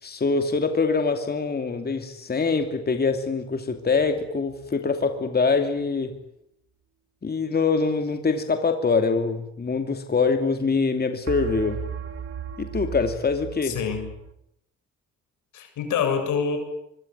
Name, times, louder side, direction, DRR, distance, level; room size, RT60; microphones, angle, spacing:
voice 1, 0.0-6.2 7.2-11.8 12.6-13.8, left 4 dB, 30° left, 6 dB, 2.8 m, -24 dB
sound 1, 3.9-4.8 11.3-14.3, right 8 dB, 50° right, 3.1 m, -36 dB
voice 2, 13.6-14.1 15.5-16.6, left 6 dB, 80° left, 6 dB, 7.7 m, -26 dB
24.5 x 24.0 x 9.6 m, 0.77 s
cardioid pair, 90°, 30 cm